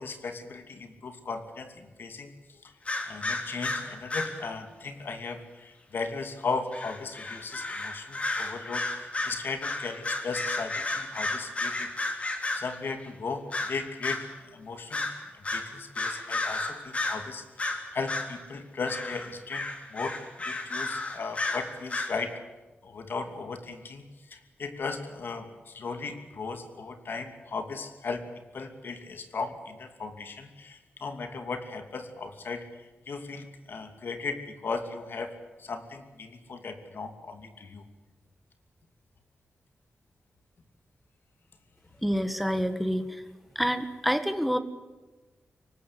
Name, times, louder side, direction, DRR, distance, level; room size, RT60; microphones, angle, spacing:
voice 1, 0.0-2.7 3.1-14.3 14.5-15.1 15.3-22.4 22.8-37.8, left 4 dB, 65° left, 7 dB, 2.6 m, -37 dB
sound 1, 2.9-4.4 6.7-12.8 13.5-14.2 14.9-15.2 15.4-17.3 17.6-18.3 18.9-22.2, left 2 dB, 35° left, 3.1 m, -32 dB
voice 2, 42.0-43.2 43.5-44.6, equal, ahead, 10 dB, 1.5 m, -27 dB
23.5 x 19.5 x 8.3 m, 1.2 s
wide cardioid pair, 130°, 4 cm